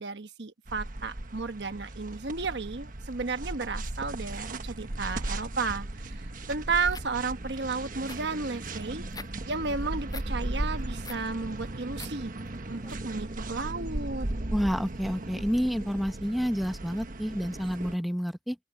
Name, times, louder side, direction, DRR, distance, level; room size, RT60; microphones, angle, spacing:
voice 1, 0.0-9.0 9.4-12.3 12.7-14.3, right 4 dB, 75° right, 1.1 m, -33 dB
sound 1, 0.7-18.0, right 1 dB, 50° right, 1.2 m, -37 dB
sound 2, 6.9-7.1 7.5-7.6 7.9-9.3 9.6-10.3 10.7-11.3 11.7-12.1 12.4-12.9, left 4 dB, 25° left, 6.3 m, -45 dB
voice 2, 14.5-18.6, equal, ahead, 0.9 m, -29 dB
open air
head